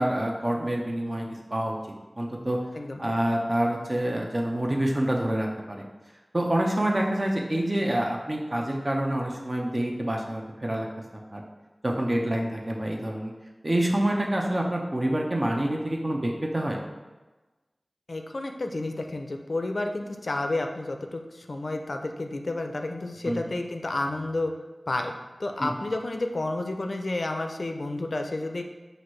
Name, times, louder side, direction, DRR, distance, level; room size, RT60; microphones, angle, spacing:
voice 1, 0.0-1.8 2.2-2.6 3.0-5.8 6.3-10.9 11.3-11.4 11.8-13.3 13.6-16.8 23.2-23.4 25.6-25.7, right 1 dB, 40° right, 0 dB, 0.6 m, -27 dB
voice 2, 18.1-24.5 24.9-25.1 25.4-28.6, left 2 dB, 80° left, 4 dB, 0.4 m, -30 dB
5.8 x 2.6 x 3.1 m, 1.2 s
wide cardioid pair, 60°, 0 cm